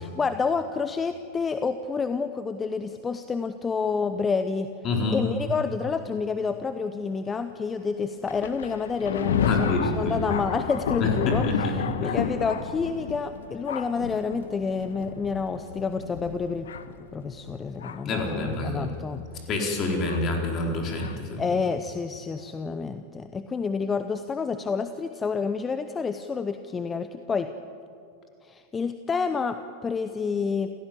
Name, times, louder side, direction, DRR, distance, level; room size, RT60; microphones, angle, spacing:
voice 1, 0.0-4.7 5.1-16.7 17.1-19.2 21.4-27.5 28.4-30.7, left 5 dB, 20° left, 10 dB, 0.9 m, -29 dB
voice 2, 4.8-5.2 9.5-10.2 11.0-11.7 12.0-12.2 18.0-18.9 19.5-21.5, left 2 dB, 35° left, 1 dB, 4.3 m, -27 dB
Thunder, 8.3-18.2 19.0-19.1 20.1-20.2 21.0-21.1, left 7 dB, 65° left, 1.2 m, -31 dB
28.5 x 16.5 x 7.7 m, 2.4 s
figure-of-eight pair, 90°, 0 cm